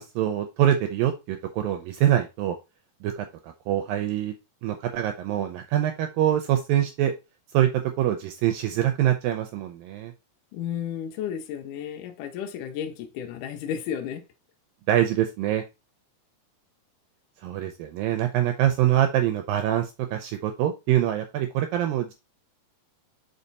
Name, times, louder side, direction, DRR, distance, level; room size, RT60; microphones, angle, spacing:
voice 1, 0.0-2.6 3.0-4.3 4.6-7.1 7.5-7.7 8.0-10.1 14.9-15.6 17.4-22.1, right 11 dB, 80° right, 2.1 m, -24 dB
voice 2, 10.5-14.2, left 9 dB, 75° left, 1.9 m, -33 dB
5.6 x 5.2 x 4.0 m
omnidirectional pair, 4.6 m